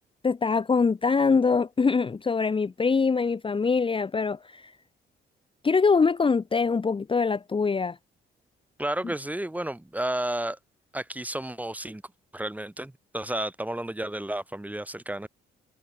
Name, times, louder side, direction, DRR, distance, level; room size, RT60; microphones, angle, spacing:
voice 1, 0.2-4.7 5.6-8.0, left 5 dB, 25° left, 1.0 m, -23 dB
voice 2, 8.8-10.6 10.9-12.0 12.3-15.3, right 1 dB, 5° right, 2.6 m, -32 dB
open air
cardioid pair, 90°, 20 cm